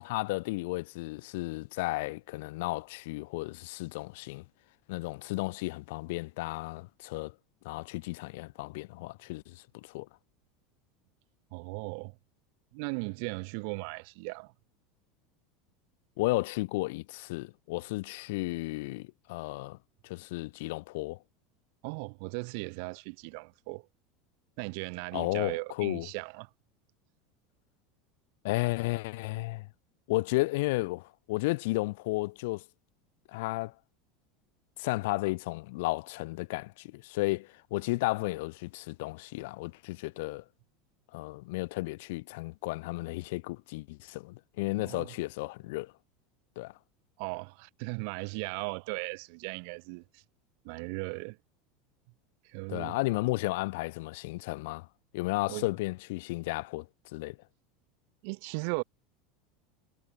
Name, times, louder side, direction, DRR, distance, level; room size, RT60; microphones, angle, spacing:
voice 1, 0.0-4.4 4.9-7.3 7.6-10.1 16.2-19.8 20.0-21.2 25.1-26.1 28.4-29.7 30.1-32.6 33.3-33.7 34.8-40.4 41.1-45.9 46.6-46.7 52.7-54.9 55.1-57.4, left 22 dB, 70° left, 0.6 m, -33 dB
voice 2, 11.5-12.2 12.7-14.5 21.8-23.9 24.6-26.5 44.8-45.1 47.2-50.2 50.6-51.4 52.4-53.0 55.5-55.6 58.2-58.8, right 38 dB, 60° right, 0.9 m, -37 dB
supercardioid pair, 150°, 0 cm